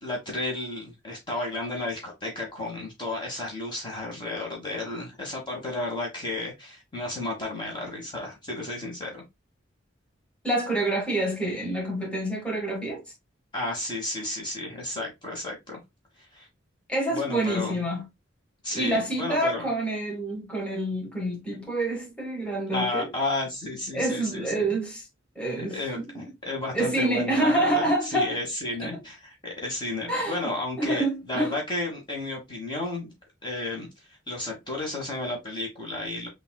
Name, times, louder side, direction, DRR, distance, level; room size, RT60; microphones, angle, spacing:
voice 1, 0.0-9.2 13.5-15.8 16.3-16.5 17.1-17.8 18.6-19.7 22.7-24.7 25.7-33.1 33.4-33.9 34.3-36.3, left 2 dB, 25° left, 1.3 m, -32 dB
voice 2, 10.4-13.0 16.9-18.1 18.7-23.1 23.9-25.1 25.3-26.2 26.7-28.3 28.8-29.0 30.1-30.5 30.8-31.5, right 1 dB, 5° left, 1.4 m, -27 dB
6.7 x 2.5 x 2.2 m
head